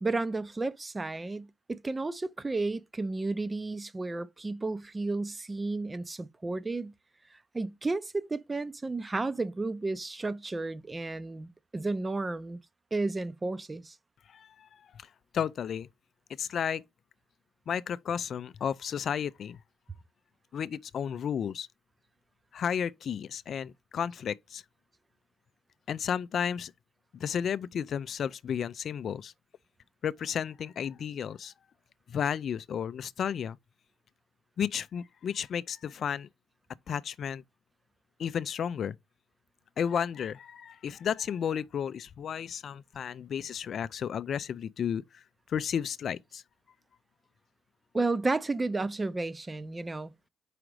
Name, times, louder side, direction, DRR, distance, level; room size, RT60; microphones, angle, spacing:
voice 1, 0.0-6.9 7.3-12.6 12.9-13.9 47.9-50.1, right 3 dB, 20° right, 0.6 m, -32 dB
voice 2, 14.3-14.7 15.3-15.9 16.4-16.8 17.7-19.6 20.5-21.7 22.5-24.6 25.9-26.7 27.1-29.3 30.0-31.5 32.1-33.6 34.6-36.3 36.9-37.4 38.2-39.0 39.8-45.2 45.5-46.4, left 8 dB, 60° left, 0.4 m, -33 dB
5.0 x 4.9 x 4.7 m
cardioid pair, 90°, 0 cm